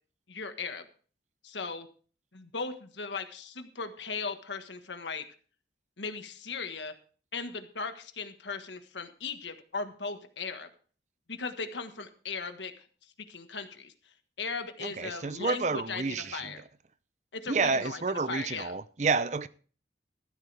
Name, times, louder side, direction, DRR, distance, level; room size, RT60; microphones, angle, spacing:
voice 1, 0.3-0.8 1.4-1.9 2.3-5.2 6.0-6.9 7.3-10.7 11.3-12.9 13.3-13.9 14.4-16.6 17.3-18.0 18.3-18.7, left 4 dB, 80° left, 1.5 m, -37 dB
voice 2, 14.8-16.6 17.5-19.5, right 4 dB, 40° right, 0.6 m, -30 dB
14.0 x 12.0 x 3.4 m
head